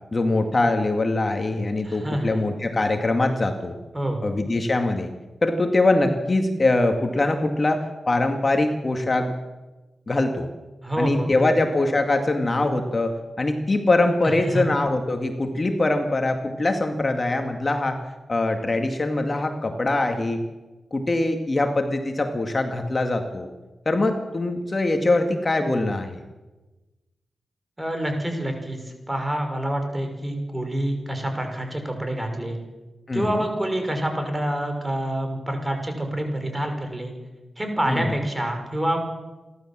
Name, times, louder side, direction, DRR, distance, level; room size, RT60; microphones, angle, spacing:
voice 1, 0.1-3.8 4.2-5.1 5.4-9.3 10.1-10.5 11.0-18.0 18.3-20.4 20.9-23.5 23.9-26.2 33.1-33.5 37.9-38.2, left 2 dB, 40° left, 5 dB, 2.1 m, -23 dB
voice 2, 1.8-2.4 3.9-4.3 10.8-11.5 14.4-14.7 27.8-28.8 29.1-32.6 33.1-37.1 37.6-39.0, right 1 dB, 20° right, 5 dB, 5.7 m, -27 dB
28.5 x 12.5 x 7.5 m, 1.2 s
cardioid pair, 50°, 0 cm